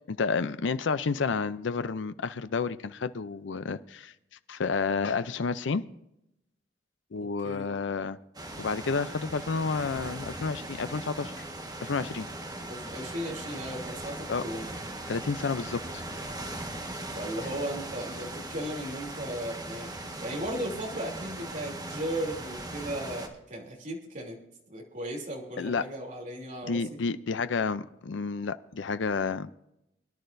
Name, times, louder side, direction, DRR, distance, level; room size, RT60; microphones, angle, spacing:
voice 1, 0.1-4.1 4.5-5.9 7.1-8.2 8.6-11.4 11.8-12.3 14.3-14.4 15.1-16.0 25.6-25.8 26.6-29.5, left 4 dB, 80° left, 13 dB, 0.5 m, -30 dB
sound 1, 8.3-23.3, right 1 dB, 20° right, 1.6 m, -39 dB
voice 2, 12.6-14.7 17.1-19.9 20.2-24.4 24.7-27.0, right 1 dB, 45° right, -1 dB, 3.0 m, -36 dB
23.0 x 11.0 x 2.6 m, 0.84 s
head